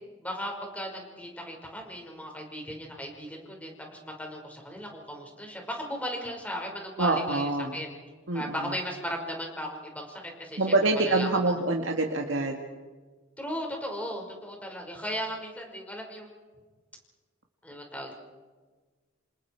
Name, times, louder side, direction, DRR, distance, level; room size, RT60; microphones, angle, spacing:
voice 1, 0.2-7.9 8.3-10.7 11.0-11.3 13.4-16.3 17.6-18.1, equal, 10° left, 1 dB, 5.5 m, -37 dB
voice 2, 7.0-7.7 8.3-8.5 10.6-12.6, right 2 dB, 75° right, 1 dB, 2.0 m, -25 dB
28.5 x 28.0 x 4.8 m, 1.4 s
head